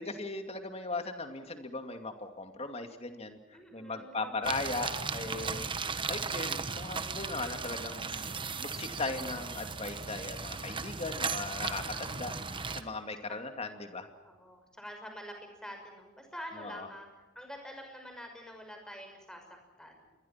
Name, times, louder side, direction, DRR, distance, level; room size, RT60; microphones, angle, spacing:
voice 1, 0.0-5.7 6.1-14.1 16.6-16.9, left 3 dB, 30° left, 6 dB, 2.5 m, -38 dB
voice 2, 3.5-4.6 5.4-6.1 11.1-11.2 13.3-13.4 14.2-17.1 17.3-19.4 19.8-20.1, equal, 5° left, 3 dB, 6.0 m, -47 dB
sound 1, 4.4-12.8, right 5 dB, 25° right, 1.2 m, -36 dB
27.5 x 22.5 x 6.0 m, 1.2 s
head